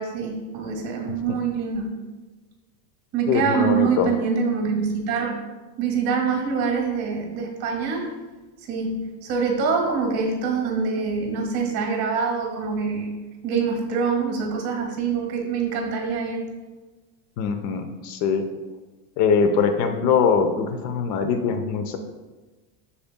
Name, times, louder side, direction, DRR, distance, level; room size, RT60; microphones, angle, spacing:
voice 1, 0.0-2.0 3.1-5.3 5.8-8.1 8.7-13.1 13.4-16.5, right 5 dB, 45° right, 2 dB, 1.8 m, -25 dB
voice 2, 3.3-4.1 17.4-18.4 19.2-22.0, left 5 dB, 70° left, 8 dB, 0.9 m, -22 dB
12.5 x 4.3 x 2.2 m, 1.2 s
cardioid pair, 155°, 49 cm